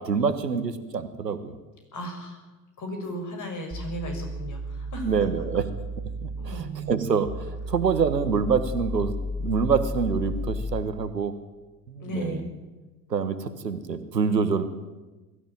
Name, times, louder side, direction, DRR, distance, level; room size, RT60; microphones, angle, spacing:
voice 1, 0.0-1.6 5.0-5.7 6.2-9.1 9.4-11.3 11.9-12.4 13.1-14.6, right 6 dB, 90° right, 10 dB, 1.6 m, -26 dB
voice 2, 1.9-2.4 2.8-5.1 6.4-6.7 12.0-12.4, equal, 40° left, 5 dB, 6.5 m, -35 dB
sound 1, 3.7-10.8, equal, 20° right, 1.9 m, -33 dB
21.5 x 13.5 x 9.0 m, 1.2 s
figure-of-eight pair, 70°, 48 cm